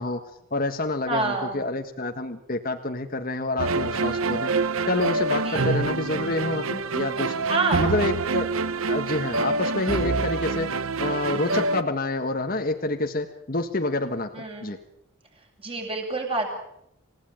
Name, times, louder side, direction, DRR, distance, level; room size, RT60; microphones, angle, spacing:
voice 1, 0.0-4.5 4.9-7.3 7.8-8.5 8.9-14.8, left 2 dB, 45° left, 5 dB, 1.5 m, -28 dB
voice 2, 1.1-1.7 5.4-6.1 7.5-7.9 14.3-14.7 15.6-16.6, right 3 dB, 25° right, 1 dB, 7.6 m, -28 dB
sound 1, 3.6-11.8, right 3 dB, 90° right, 1.0 m, -26 dB
28.0 x 17.0 x 9.2 m, 0.77 s
head